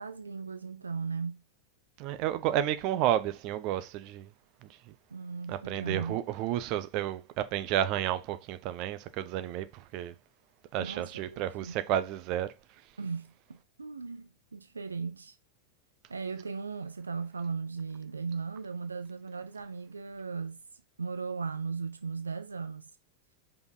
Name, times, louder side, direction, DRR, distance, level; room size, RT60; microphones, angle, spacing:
voice 1, 0.0-1.4 5.1-6.2 10.8-11.8 13.0-15.4 16.1-20.6 21.0-22.9, right 5 dB, 75° right, 0.5 m, -37 dB
voice 2, 2.0-4.3 4.6-4.7 5.5-10.1 10.7-12.5, right 11 dB, 40° right, 0.8 m, -31 dB
5.5 x 4.5 x 3.9 m
figure-of-eight pair, 90°, 0 cm